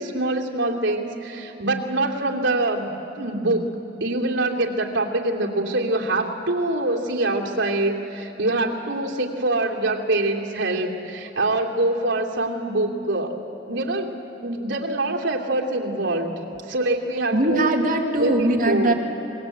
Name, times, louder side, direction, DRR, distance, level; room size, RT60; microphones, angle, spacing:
voice 1, 0.0-2.9 3.2-3.6 4.0-13.3 13.7-14.1 14.4-17.7 18.2-18.9, right 2 dB, 75° right, -1 dB, 2.8 m, -24 dB
voice 2, 17.3-18.9, right 1 dB, 45° right, 0 dB, 2.4 m, -20 dB
26.0 x 21.5 x 8.2 m, 3.0 s
head